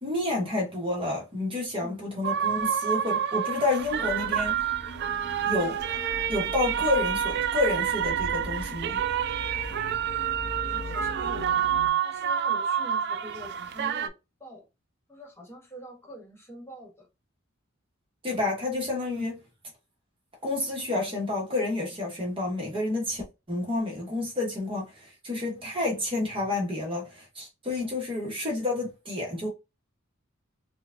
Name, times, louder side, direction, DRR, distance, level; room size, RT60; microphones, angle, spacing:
voice 1, 0.0-4.7 5.4-5.8 6.3-9.0 18.2-19.4 20.4-29.5, left 2 dB, 25° right, 1.0 m, -29 dB
sound 1, 2.2-14.1, right 9 dB, 55° right, 0.4 m, -28 dB
sound 2, 3.8-11.9, equal, 60° left, 0.8 m, -40 dB
voice 2, 10.5-11.7 12.0-14.1 14.4-14.6 15.1-17.1 19.1-19.3 25.6-25.7 27.7-27.9, equal, 15° left, 1.3 m, -44 dB
4.7 x 2.2 x 2.5 m
head